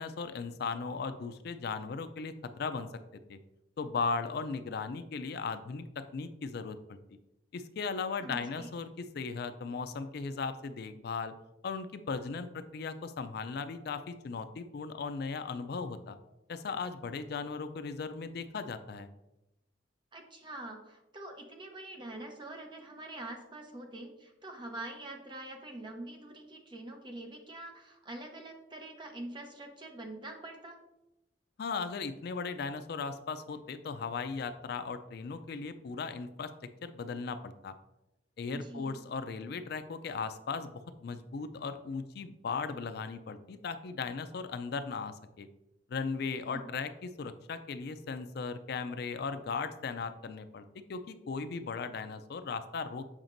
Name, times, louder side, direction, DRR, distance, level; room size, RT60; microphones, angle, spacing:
voice 1, 0.0-2.9 3.3-3.4 3.8-7.0 7.5-11.3 11.6-16.2 16.5-19.1 31.6-36.5 36.8-37.7 38.4-45.5 45.9-53.0, left 4 dB, 65° left, 11 dB, 0.4 m, -37 dB
voice 2, 8.2-8.7 20.1-30.8 38.5-39.0 46.3-46.7, right 2 dB, 25° right, 3 dB, 0.9 m, -45 dB
7.3 x 5.0 x 2.6 m, 0.92 s
head